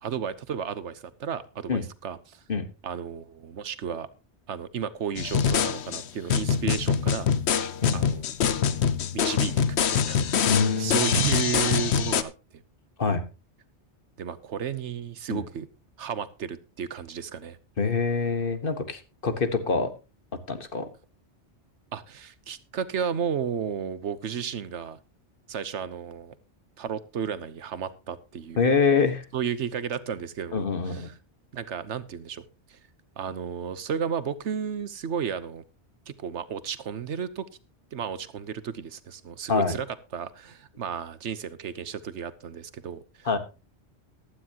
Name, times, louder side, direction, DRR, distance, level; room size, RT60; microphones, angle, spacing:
voice 1, 0.0-2.4 2.8-4.1 4.5-7.3 7.9-8.3 9.1-12.3 14.2-15.7 16.0-17.6 21.9-25.0 25.5-26.3 26.8-28.7 29.3-30.7 31.0-31.2 31.5-32.4 32.7-32.8 33.2-35.6 36.1-37.4 37.9-43.4, right 7 dB, 75° right, 14 dB, 1.3 m, -33 dB
sound 1, 5.2-12.2, left 7 dB, 65° left, 1.1 m, -24 dB
voice 2, 7.6-8.0 10.5-11.0 13.0-13.2 15.3-15.4 17.8-19.9 20.5-20.8 28.6-29.2 30.5-31.1 39.5-39.8 43.2-43.4, left 5 dB, 50° left, 10 dB, 1.6 m, -25 dB
15.5 x 12.0 x 2.9 m, 0.29 s
omnidirectional pair, 1.2 m